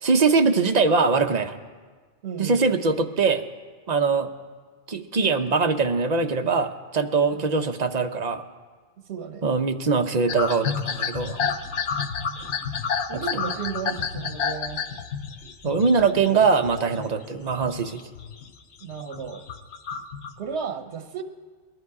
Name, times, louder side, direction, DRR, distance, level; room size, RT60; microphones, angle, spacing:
voice 1, 0.0-1.6 2.4-3.4 3.9-4.3 4.9-8.5 9.4-11.4 15.6-18.0, right 4 dB, 45° right, 7 dB, 0.8 m, -22 dB
voice 2, 2.2-2.7 7.3-7.6 9.1-9.5 12.2-12.5 13.1-14.8 18.8-19.5 20.4-21.2, right 6 dB, 80° right, 7 dB, 1.1 m, -34 dB
sound 1, 10.3-17.1 17.4-18.5 18.8-20.3, left 6 dB, 85° left, 1.1 m, -30 dB
20.0 x 11.0 x 4.8 m, 1.5 s
omnidirectional pair, 1.1 m